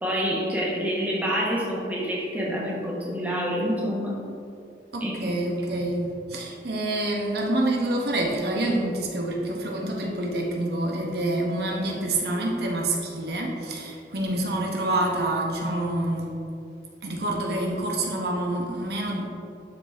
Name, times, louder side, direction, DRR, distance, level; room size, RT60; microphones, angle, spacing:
voice 1, 0.0-4.2 5.0-5.3 14.2-14.3, equal, 10° right, -4 dB, 1.2 m, -27 dB
voice 2, 4.9-16.3 17.0-19.3, right 1 dB, 65° right, -1 dB, 1.1 m, -27 dB
11.5 x 4.1 x 3.5 m, 2.5 s
head